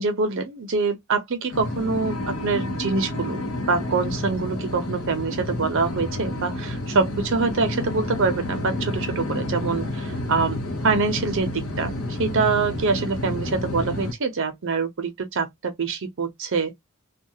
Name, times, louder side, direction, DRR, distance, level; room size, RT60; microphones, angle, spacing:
voice 1, 0.0-10.6 10.8-16.7, right 4 dB, 60° right, 0.6 m, -25 dB
sound 1, 1.5-14.1, left 1 dB, 70° left, 0.8 m, -30 dB
2.3 x 2.3 x 2.7 m
head